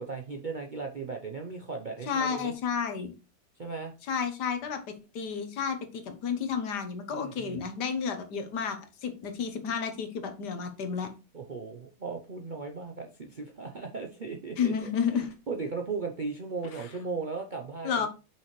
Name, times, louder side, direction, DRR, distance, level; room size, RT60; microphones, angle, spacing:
voice 1, 0.0-2.5 3.6-3.9 7.1-7.6 11.3-14.9 15.5-18.1, right 4 dB, 45° right, 2 dB, 0.6 m, -37 dB
voice 2, 2.1-3.1 4.1-11.1 14.6-15.4 16.7-16.9 17.8-18.1, left 6 dB, 70° left, 8 dB, 1.6 m, -31 dB
6.0 x 5.9 x 3.2 m, 0.30 s
omnidirectional pair, 1.9 m